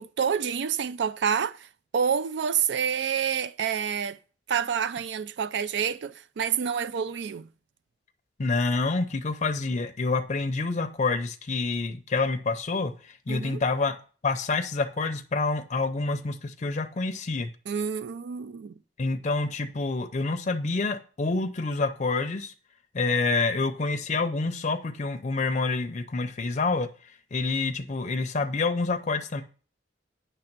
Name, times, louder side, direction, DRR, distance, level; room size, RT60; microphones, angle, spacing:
voice 1, 0.0-1.7 1.9-4.2 4.5-7.5 13.3-13.6 17.7-18.8, right 7 dB, 70° right, 0.4 m, -28 dB
voice 2, 8.4-14.0 14.2-17.5 19.0-22.5 22.9-26.9 27.3-29.4, left 3 dB, 40° left, 0.5 m, -27 dB
8.9 x 3.3 x 5.9 m
head